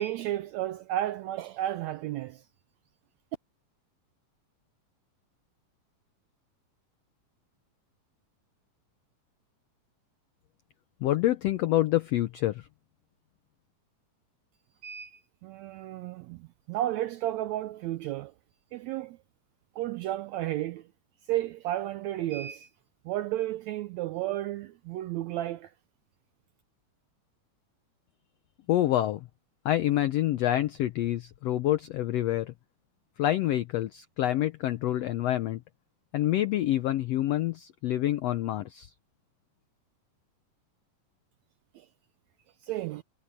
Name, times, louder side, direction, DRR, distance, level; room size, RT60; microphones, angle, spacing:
voice 1, 0.0-2.4 14.8-18.3 18.7-19.2 19.7-20.9 21.3-22.7 23.0-25.7 41.7-41.9 42.6-43.0, right 14 dB, 85° right, 1.6 m, -33 dB
voice 2, 11.0-12.7 28.7-29.3 29.6-32.5 33.2-35.6 36.1-38.9, left 13 dB, 90° left, 1.4 m, -27 dB
omnidirectional pair, 3.8 m